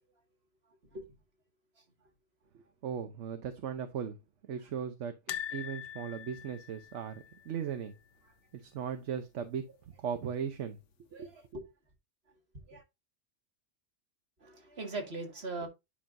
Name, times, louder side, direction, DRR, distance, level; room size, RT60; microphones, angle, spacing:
voice 1, 2.5-4.2 4.5-5.2 5.5-7.9 8.5-10.8 11.2-11.3, right 7 dB, 70° right, 1.1 m, -38 dB
sound 1, 5.3-8.3 8.6-8.8 9.1-9.2 10.4-10.9 11.4-11.5, left 10 dB, 70° left, 1.0 m, -43 dB
voice 2, 11.1-11.7 12.7-12.8 14.4-15.7, right 2 dB, 55° right, 2.1 m, -40 dB
9.9 x 5.5 x 2.6 m
omnidirectional pair, 1.3 m